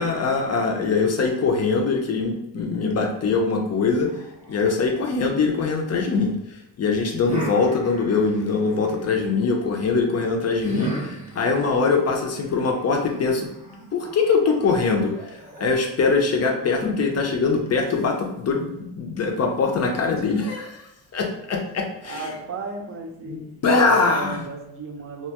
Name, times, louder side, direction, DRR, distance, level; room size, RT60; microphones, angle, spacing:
voice 1, 0.0-4.1 4.5-6.4 6.8-13.5 13.9-20.8 21.1-22.3 23.3-24.5, left 4 dB, 40° left, 2 dB, 0.5 m, -22 dB
sound 1, 4.0-6.2 7.2-9.3 10.6-16.2, right 2 dB, 15° right, 0.8 m, -38 dB
voice 2, 20.2-20.7 22.0-23.4 23.8-25.3, right 4 dB, 35° right, 3 dB, 0.5 m, -35 dB
2.7 x 2.2 x 2.8 m, 0.83 s
cardioid pair, 135°, 42 cm